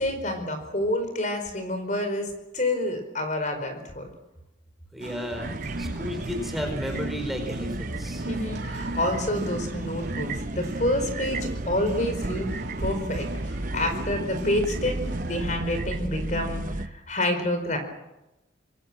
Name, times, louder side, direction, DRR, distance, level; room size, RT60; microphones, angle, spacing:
voice 1, 0.0-4.1 8.3-12.5 12.8-17.8, left 1 dB, 40° left, 7 dB, 4.8 m, -28 dB
voice 2, 4.9-8.3, equal, ahead, 3 dB, 4.5 m, -34 dB
sound 1, 5.0-15.6, right 1 dB, 60° right, 2.6 m, -37 dB
sound 2, 5.4-16.9, right 2 dB, 45° right, 1.0 m, -33 dB
26.0 x 21.5 x 7.6 m, 0.94 s
head